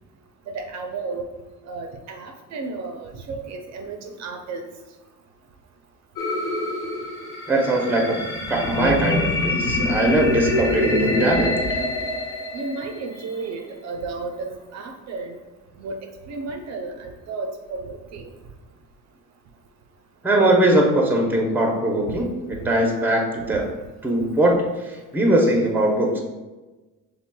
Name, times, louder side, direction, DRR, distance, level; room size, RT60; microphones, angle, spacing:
voice 1, 0.5-1.2 1.7-4.7 9.7-9.8 12.5-15.4 15.8-16.0 16.3-18.2, right 3 dB, 50° right, 4 dB, 0.5 m, -33 dB
sound 1, 6.2-13.2, left 2 dB, 65° left, 1.3 m, -25 dB
voice 2, 7.5-8.2 8.5-11.8 20.2-23.7 24.0-26.2, right 1 dB, 5° right, 1 dB, 0.6 m, -21 dB
5.9 x 3.3 x 2.2 m, 1.2 s
cardioid pair, 125°, 34 cm